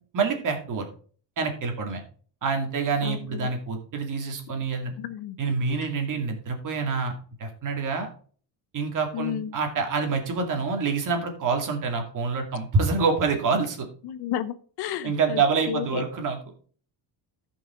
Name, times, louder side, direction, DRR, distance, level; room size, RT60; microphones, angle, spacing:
voice 1, 0.1-0.9 1.4-2.0 2.4-4.9 5.4-7.1 7.4-8.1 8.7-13.9 15.0-16.4, right 4 dB, 45° right, 4 dB, 2.4 m, -26 dB
voice 2, 3.0-3.5 5.0-5.4 9.1-9.5 14.0-15.4 15.7-16.0, left 10 dB, 60° left, 13 dB, 0.8 m, -32 dB
14.0 x 5.6 x 3.8 m, 0.43 s
cardioid pair, 150°, 45 cm